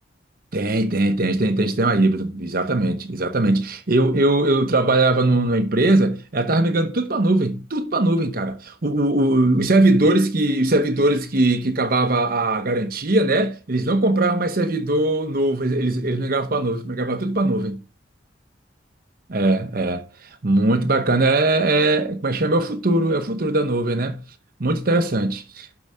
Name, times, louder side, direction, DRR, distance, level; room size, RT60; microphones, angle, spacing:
voice 1, 0.5-17.8 19.3-24.2 24.6-25.7, right 2 dB, 50° right, 0.9 m, -20 dB
12.0 x 4.9 x 6.3 m
head